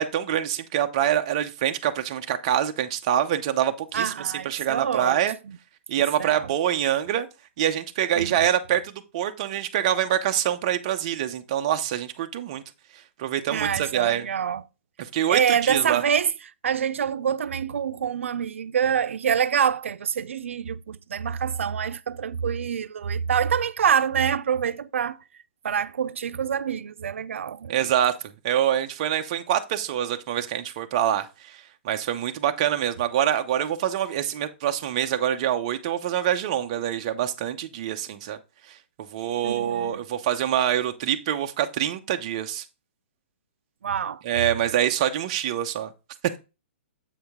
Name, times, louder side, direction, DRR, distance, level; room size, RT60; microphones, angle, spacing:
voice 1, 0.0-4.1 4.4-5.4 5.9-7.3 7.6-12.6 13.2-14.3 15.0-16.0 27.7-28.1 28.4-31.6 31.8-38.4 39.1-42.6 44.2-45.9, right 10 dB, 30° right, 0.7 m, -25 dB
voice 2, 3.9-5.2 5.4-5.6 6.0-6.5 8.2-8.5 13.5-14.6 15.3-16.3 16.6-25.2 25.6-27.9 39.4-40.0 43.8-44.2, right 8 dB, 80° right, 0.5 m, -26 dB
8.0 x 5.0 x 3.5 m
hypercardioid pair, 175°, 7 cm